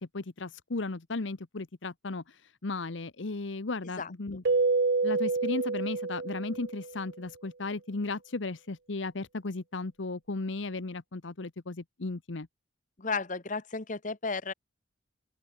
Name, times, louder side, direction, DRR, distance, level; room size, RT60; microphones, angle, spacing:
voice 1, 0.0-4.4 5.0-12.5, left 3 dB, 75° left, 1.0 m, -35 dB
Keyboard (musical), 4.5-7.0, right 3 dB, 60° right, 0.7 m, -28 dB
voice 2, 13.0-14.5, left 4 dB, 40° left, 1.3 m, -33 dB
open air
head